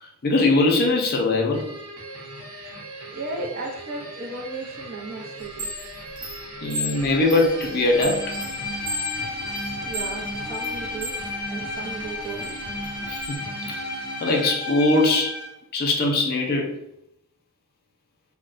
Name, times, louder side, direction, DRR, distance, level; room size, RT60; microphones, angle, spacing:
voice 1, 0.0-1.7 6.6-8.3 13.1-13.4 13.7-13.8 14.2-15.4 15.7-16.8, left 2 dB, 45° left, 1 dB, 0.5 m, -21 dB
sound 1, 1.5-14.7, right 2 dB, 80° right, 0.9 m, -39 dB
voice 2, 3.1-5.7 9.8-11.1 11.5-12.5, right 3 dB, 45° right, 0 dB, 0.5 m, -35 dB
Chime, 5.4-11.2 11.7-13.4, equal, 20° right, 0.8 m, -34 dB
Bowed string instrument, 6.9-15.5, left 3 dB, 15° left, 1.0 m, -33 dB
3.0 x 2.1 x 2.4 m, 0.79 s
head